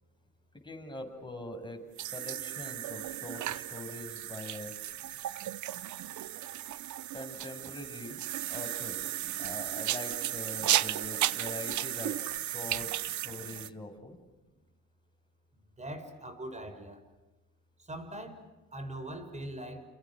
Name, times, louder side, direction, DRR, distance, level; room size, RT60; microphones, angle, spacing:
voice 1, 0.6-1.8 2.1-4.7 7.1-8.2 8.5-9.0 9.2-14.2, left 2 dB, 15° left, 3 dB, 7.4 m, -43 dB
sound 1, 2.0-13.7, right 13 dB, 75° right, 1.0 m, -35 dB
voice 2, 15.8-17.0 17.9-18.4 18.7-19.8, right 1 dB, 25° right, 9 dB, 6.3 m, -41 dB
29.5 x 29.0 x 6.4 m, 1.1 s
cardioid pair, 90°, 30 cm